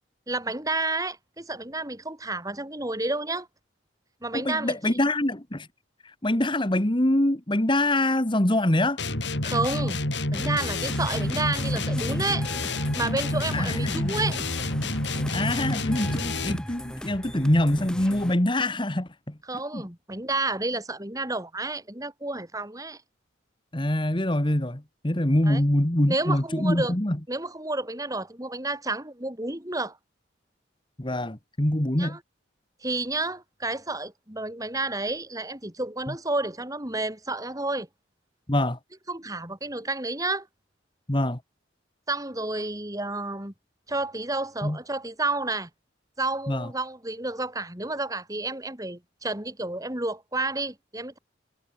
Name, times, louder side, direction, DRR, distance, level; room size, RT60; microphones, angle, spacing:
voice 1, 0.3-3.5 4.2-5.0 9.4-10.0 10.3-12.5 12.9-14.4 19.5-23.0 25.4-25.6 26.1-26.9 27.3-30.0 32.0-32.2 32.8-37.9 39.1-40.5 42.1-43.5 43.9-45.7 46.2-51.2, right 2 dB, 20° right, 4.1 m, -30 dB
voice 2, 4.3-5.7 6.2-9.0 13.5-14.2 15.3-19.3 19.7-19.8 23.7-27.2 31.0-32.2 36.1-36.2 38.5-38.8 41.1-41.4 44.6-44.8 46.5-46.7, left 1 dB, 25° left, 1.6 m, -24 dB
sound 1, 9.0-16.7, left 2 dB, 65° left, 5.4 m, -28 dB
sound 2, 10.3-18.3, equal, 5° left, 5.0 m, -38 dB
head